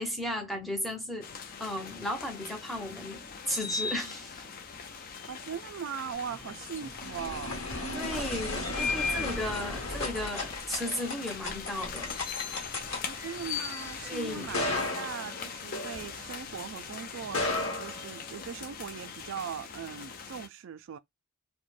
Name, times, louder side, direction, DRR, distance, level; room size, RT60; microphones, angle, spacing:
voice 1, 0.0-4.4 7.9-12.2 14.1-14.6, left 1 dB, ahead, 0.6 m, -35 dB
sound 1, 1.2-20.5, left 6 dB, 40° left, 0.4 m, -40 dB
voice 2, 5.3-8.3 8.7-9.3 13.1-21.0, right 7 dB, 55° right, 0.3 m, -40 dB
sound 2, 6.2-16.6 17.2-18.7, left 2 dB, 60° left, 1.0 m, -36 dB
2.5 x 2.1 x 3.1 m
head